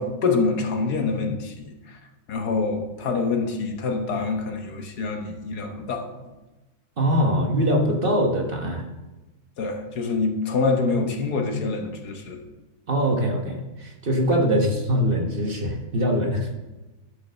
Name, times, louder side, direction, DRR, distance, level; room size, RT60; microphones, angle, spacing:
voice 1, 0.0-2.0 2.3-6.1 9.6-12.4, left 4 dB, 85° left, 4 dB, 1.7 m, -26 dB
voice 2, 7.0-8.9 12.9-16.5, equal, 40° right, 2 dB, 1.2 m, -23 dB
11.0 x 5.0 x 6.3 m, 1.1 s
omnidirectional pair, 1.6 m